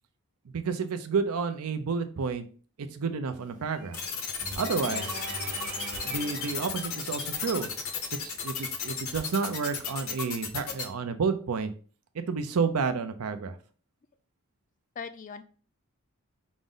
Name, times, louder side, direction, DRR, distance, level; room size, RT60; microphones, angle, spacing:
voice 1, 0.5-2.4 2.8-4.0 4.6-5.2 6.0-7.7 8.2-11.7 12.1-13.6, right 5 dB, 90° right, 9 dB, 0.5 m, -30 dB
sound 1, 3.3-9.0, right 7 dB, 35° right, 0.7 m, -49 dB
sound 2, 3.9-10.8, left 6 dB, 75° left, 0.8 m, -34 dB
sound 3, 4.4-8.6, right 2 dB, 60° right, 1.1 m, -43 dB
voice 2, 4.8-5.4 15.0-15.4, left 5 dB, 35° left, 10 dB, 0.3 m, -41 dB
5.1 x 2.0 x 3.7 m, 0.41 s
head